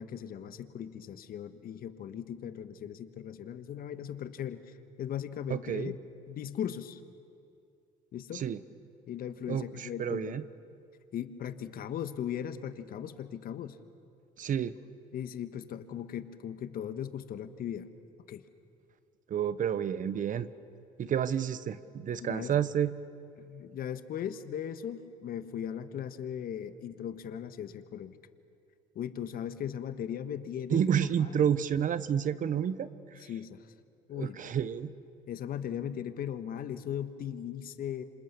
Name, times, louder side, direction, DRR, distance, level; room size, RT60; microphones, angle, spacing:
voice 1, 0.0-4.6 5.0-6.0 6.3-7.0 8.1-8.4 9.1-10.4 11.1-13.8 15.1-17.9 18.3-18.4 22.2-22.5 23.4-28.2 28.9-31.4 33.2-33.7 34.1-34.4 35.3-38.0, left 9 dB, 60° left, 11 dB, 1.4 m, -38 dB
voice 2, 5.5-5.9 8.3-8.6 9.5-10.4 14.4-14.7 19.3-20.5 21.0-22.9 30.7-32.9 34.1-34.9, right 8 dB, 50° right, 15 dB, 1.1 m, -30 dB
27.0 x 26.5 x 7.1 m, 2.5 s
supercardioid pair, 70°, 17 cm